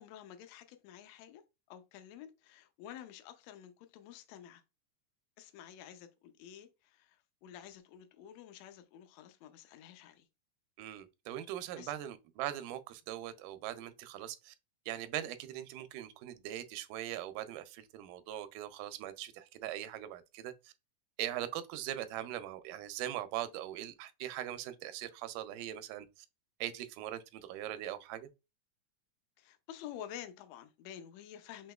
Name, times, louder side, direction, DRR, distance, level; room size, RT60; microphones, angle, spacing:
voice 1, 0.0-1.4 1.7-4.6 5.4-10.3 11.8-12.0 29.4-31.7, left 10 dB, 90° left, 1.5 m, -50 dB
voice 2, 10.8-14.6 14.9-20.7 21.2-26.1 26.6-28.3, right 12 dB, 85° right, 2.0 m, -41 dB
5.9 x 2.8 x 2.3 m
omnidirectional pair, 3.7 m